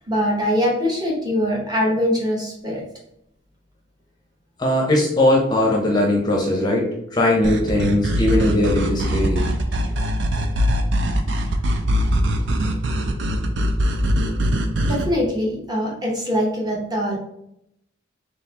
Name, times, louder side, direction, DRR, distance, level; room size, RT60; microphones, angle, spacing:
voice 1, 0.1-2.8 14.8-17.2, equal, 20° right, -3 dB, 1.0 m, -22 dB
voice 2, 4.6-9.4, left 1 dB, 20° left, -2 dB, 0.7 m, -19 dB
sound 1, 7.4-15.1, equal, 65° right, 0.5 m, -21 dB
4.1 x 3.6 x 2.8 m, 0.77 s
head